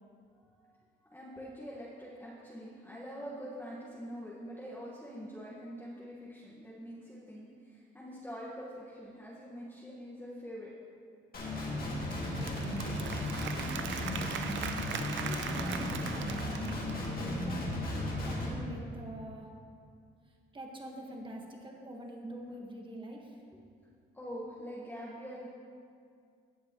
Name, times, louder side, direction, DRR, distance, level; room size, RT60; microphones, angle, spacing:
voice 1, 1.1-10.7 24.1-25.5, equal, 10° left, -7 dB, 1.7 m, -44 dB
Guitar, 11.3-18.5, left 1 dB, 50° left, 2.2 m, -35 dB
Applause / Crowd, 12.0-17.3, right 7 dB, 70° right, 0.6 m, -40 dB
voice 2, 15.2-17.7 18.2-19.5 20.5-23.3, equal, 25° right, 0 dB, 1.6 m, -45 dB
17.0 x 6.7 x 3.2 m, 2.3 s
cardioid pair, 90°, 20 cm